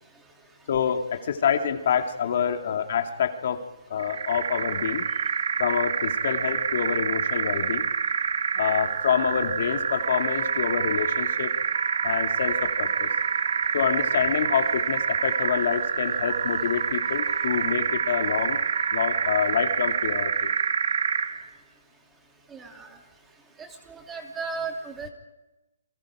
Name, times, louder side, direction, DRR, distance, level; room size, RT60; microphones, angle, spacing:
voice 1, 0.7-3.6 3.9-5.0 5.6-7.9 8.6-11.5 12.0-13.1 13.7-18.6 18.9-20.5, left 8 dB, 50° left, 5 dB, 2.5 m, -27 dB
sound 1, 4.0-21.4, right 6 dB, 65° right, 2.4 m, -27 dB
sound 2, 9.7-19.6, right 4 dB, 45° right, 1.6 m, -41 dB
voice 2, 22.5-23.0 23.6-25.1, right 4 dB, 10° right, 3 dB, 2.8 m, -35 dB
29.5 x 23.5 x 5.0 m, 1.0 s
hypercardioid pair, 160°, 0 cm